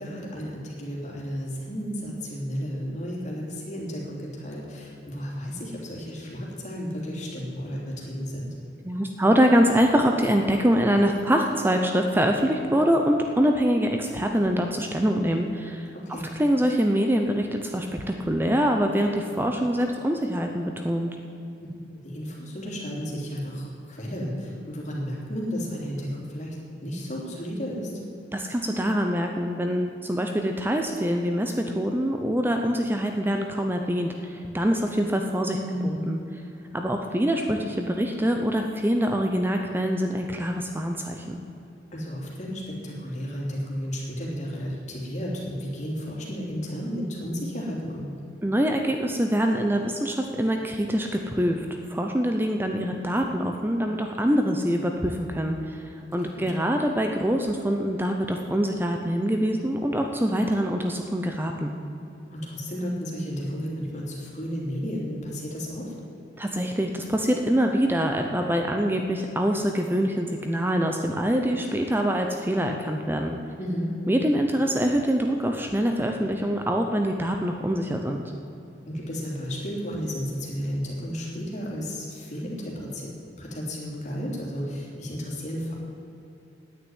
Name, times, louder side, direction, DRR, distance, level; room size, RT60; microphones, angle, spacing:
voice 1, 0.0-8.5 16.0-16.2 22.0-26.6 26.8-27.9 35.5-36.0 41.9-48.1 56.3-56.4 62.3-65.9 73.6-73.9 78.9-83.1 83.4-85.8, equal, 40° left, -3 dB, 3.3 m, -33 dB
voice 2, 8.8-15.9 16.4-21.1 28.3-35.6 35.8-36.2 36.7-41.4 48.4-61.8 66.4-73.4 74.1-78.2, equal, 10° right, 3 dB, 0.7 m, -24 dB
9.8 x 9.0 x 9.5 m, 2.9 s
head